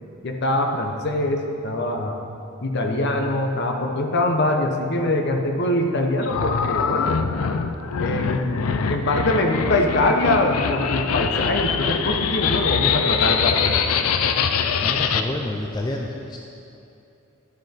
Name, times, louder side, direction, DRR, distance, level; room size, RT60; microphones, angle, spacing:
voice 1, 0.2-2.2 2.6-7.2 8.0-13.8, left 1 dB, 50° left, 3 dB, 0.8 m, -23 dB
sound 1, 6.2-15.2, left 6 dB, 80° left, 0.4 m, -23 dB
voice 2, 14.8-16.4, left 1 dB, 20° left, 0 dB, 0.4 m, -28 dB
11.5 x 6.2 x 4.4 m, 2.7 s
head